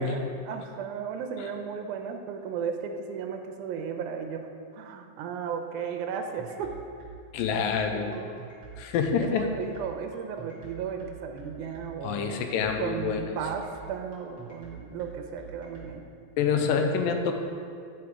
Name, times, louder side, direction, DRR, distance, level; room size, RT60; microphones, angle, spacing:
voice 1, 0.0-4.5 4.7-6.7 7.9-8.3 9.2-12.5 12.8-16.0, right 7 dB, 80° right, 4 dB, 1.9 m, -35 dB
sound 1, 6.1-15.9, right 6 dB, 35° right, 1.4 m, -46 dB
voice 2, 7.3-8.1 8.8-9.5 12.0-13.3 16.4-17.3, left 6 dB, 85° left, 5 dB, 2.3 m, -27 dB
8.6 x 5.2 x 4.6 m, 2.3 s
omnidirectional pair, 3.9 m